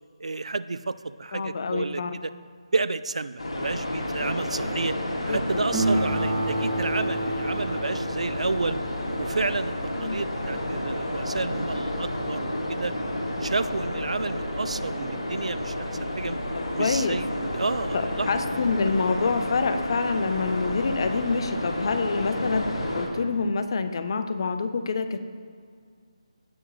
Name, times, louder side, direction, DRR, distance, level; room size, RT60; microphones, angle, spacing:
voice 1, 0.2-2.3 2.7-5.0 5.2-8.8 9.2-9.7 10.0-13.0 13.4-16.4 16.7-18.3, right 3 dB, 80° right, 15 dB, 0.4 m, -30 dB
voice 2, 1.3-2.1 5.3-5.4 10.0-10.2 16.8-17.1 18.3-22.7 22.9-25.2, left 4 dB, 45° left, 9 dB, 0.7 m, -26 dB
sound 1, 3.4-23.1, left 1 dB, 80° left, 2.5 m, -31 dB
Acoustic guitar, 5.7-10.6, right 2 dB, 20° right, 1.8 m, -30 dB
16.0 x 6.1 x 3.1 m, 2.1 s
figure-of-eight pair, 165°, 3 cm